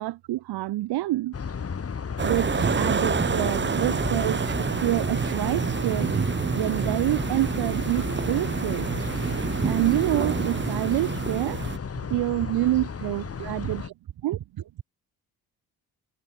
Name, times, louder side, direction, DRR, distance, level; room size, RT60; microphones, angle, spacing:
voice 1, 0.0-1.3 2.2-6.1 6.5-8.9 9.6-11.6 12.1-13.8 14.2-14.4, right 16 dB, 85° right, 2.0 m, -27 dB
sound 1, 1.3-13.9, left 6 dB, 40° left, 2.0 m, -34 dB
sound 2, 2.2-11.8, right 6 dB, 30° right, 1.0 m, -27 dB
voice 2, 12.4-12.7 13.0-13.1 13.4-13.9 14.3-14.8, right 11 dB, 70° right, 4.4 m, -39 dB
cardioid pair, 70°, 38 cm